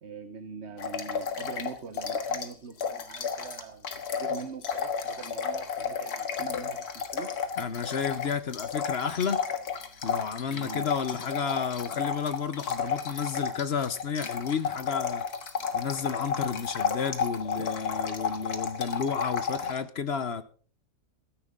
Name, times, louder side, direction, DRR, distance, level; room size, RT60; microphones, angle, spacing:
voice 1, 0.0-7.3 10.5-11.2 17.6-17.7, right 5 dB, 50° right, 1.3 m, -43 dB
sound 1, 0.8-2.5 2.8-19.8, left 6 dB, 90° left, 2.0 m, -32 dB
voice 2, 7.6-9.4 10.0-15.2 15.7-20.4, left 6 dB, 50° left, 0.9 m, -31 dB
15.5 x 13.5 x 3.7 m
omnidirectional pair, 1.6 m